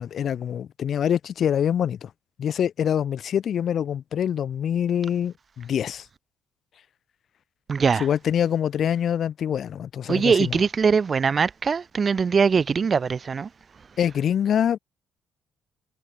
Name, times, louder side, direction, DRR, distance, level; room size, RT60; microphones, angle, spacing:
voice 1, 0.0-2.1 2.4-6.0 8.0-10.6 14.0-14.8, left 9 dB, 60° left, 6.6 m, -25 dB
voice 2, 7.7-8.1 10.1-13.5, right 5 dB, 40° right, 1.5 m, -22 dB
cardioid pair, 90°, 0 cm